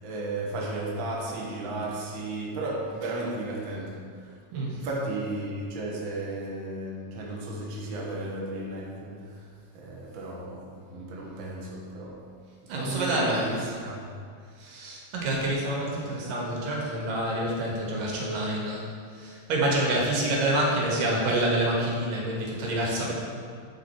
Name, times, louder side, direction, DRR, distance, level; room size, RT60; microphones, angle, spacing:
voice 1, 0.0-4.4 4.7-9.5 9.7-12.2 12.6-14.1, right 2 dB, 50° right, -3 dB, 1.5 m, -34 dB
voice 2, 12.7-13.6 14.6-18.9 19.1-23.1, right 1 dB, 80° right, -3 dB, 3.1 m, -27 dB
12.0 x 4.9 x 4.5 m, 2.1 s
omnidirectional pair, 3.8 m